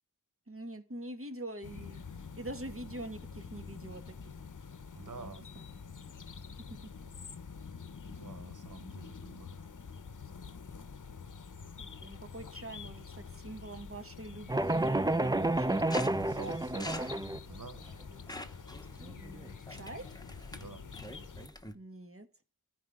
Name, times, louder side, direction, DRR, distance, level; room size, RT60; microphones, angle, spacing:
voice 1, 0.5-2.0 2.4-4.4 5.2-5.6 6.7-6.8 11.8-16.3 18.9-20.1 21.7-22.3, right 1 dB, 40° right, 1.6 m, -45 dB
sound 1, 1.6-21.5, left 5 dB, 65° left, 0.8 m, -47 dB
voice 2, 4.9-5.5 8.0-9.6 16.3-18.0 20.5-20.9, right 4 dB, 65° right, 1.0 m, -48 dB
sound 2, 14.5-17.4, right 2 dB, 10° right, 0.4 m, -30 dB
sound 3, 15.9-21.7, left 1 dB, 10° left, 1.0 m, -45 dB
14.0 x 4.8 x 3.6 m
wide cardioid pair, 45°, 33 cm